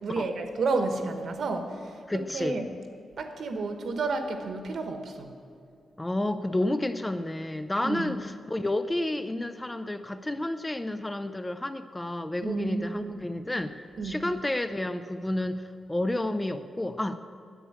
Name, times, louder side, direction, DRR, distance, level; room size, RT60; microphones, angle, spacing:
voice 1, 0.0-2.6 3.2-5.3 7.8-8.2 12.4-13.2 14.0-14.3, right 3 dB, 55° right, 7 dB, 1.2 m, -31 dB
voice 2, 2.1-2.6 6.0-17.2, left 1 dB, 10° left, 10 dB, 0.4 m, -30 dB
10.0 x 8.5 x 9.7 m, 2.4 s
wide cardioid pair, 170°, 0 cm